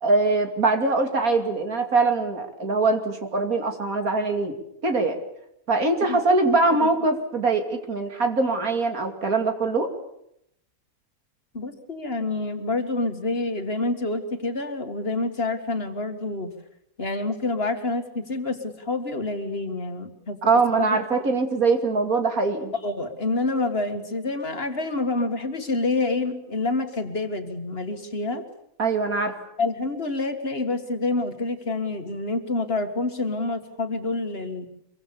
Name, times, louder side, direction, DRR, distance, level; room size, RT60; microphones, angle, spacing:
voice 1, 0.0-4.6 4.8-5.2 5.7-9.9 20.4-22.7 28.8-29.4, right 3 dB, 75° right, 5 dB, 3.1 m, -22 dB
voice 2, 11.5-16.5 17.0-21.0 22.8-28.4 29.6-34.6, left 2 dB, 45° left, 6 dB, 2.1 m, -27 dB
25.0 x 23.5 x 7.1 m, 0.77 s
omnidirectional pair, 1.5 m